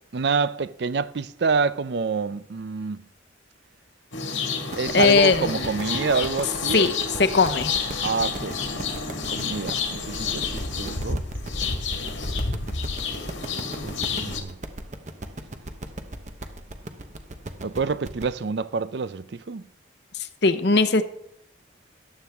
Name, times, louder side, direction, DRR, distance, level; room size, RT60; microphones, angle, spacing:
voice 1, 0.1-3.0 4.7-6.9 8.0-9.0 9.3-11.2 13.8-14.6 17.6-19.7, right 4 dB, 60° right, 0.5 m, -27 dB
sound 1, 4.1-14.4, left 5 dB, 80° left, 1.8 m, -30 dB
sound 2, 4.7-18.3, right 1 dB, 40° right, 1.0 m, -37 dB
voice 2, 4.9-5.7 6.7-6.9 7.2-7.7 20.1-21.0, left 4 dB, 60° left, 0.8 m, -19 dB
14.0 x 11.0 x 3.5 m
head